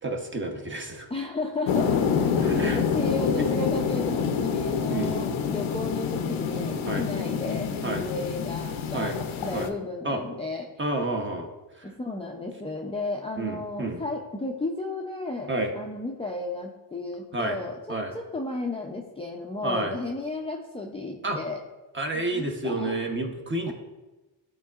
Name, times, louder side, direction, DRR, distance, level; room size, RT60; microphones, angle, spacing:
voice 1, 0.0-1.1 2.4-2.8 4.9-5.1 6.9-7.0 7.8-8.0 8.9-9.2 9.5-9.7 10.0-10.2 10.8-11.5 11.8-11.9 13.4-14.0 15.5-15.7 17.3-17.6 17.9-18.1 19.6-19.9 21.2-21.4 21.9-23.7, right 2 dB, 25° right, 2 dB, 0.9 m, -29 dB
voice 2, 1.1-9.1 9.4-10.7 11.8-15.5 15.7-21.6 22.3-22.9 23.7-23.8, left 2 dB, 15° left, -1 dB, 0.5 m, -33 dB
sound 1, 1.7-9.7, left 6 dB, 80° left, 0.7 m, -27 dB
11.0 x 3.8 x 2.4 m, 1.1 s
cardioid pair, 100°, 47 cm